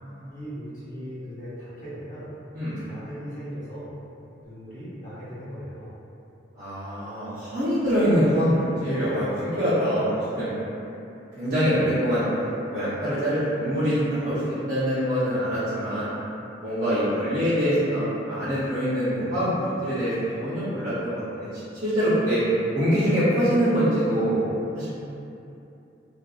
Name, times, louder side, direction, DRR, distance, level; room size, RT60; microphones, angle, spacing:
voice 1, 0.3-2.3 2.8-3.9 4.4-5.9, equal, 45° left, -11 dB, 0.8 m, -38 dB
voice 2, 6.6-10.5 11.4-12.2 12.7-14.4 14.7-16.1 16.6-20.1 20.4-21.5 21.8-22.4 22.7-24.4 24.7-24.9, equal, 45° right, -15 dB, 0.6 m, -24 dB
2.5 x 2.2 x 2.3 m, 2.8 s
head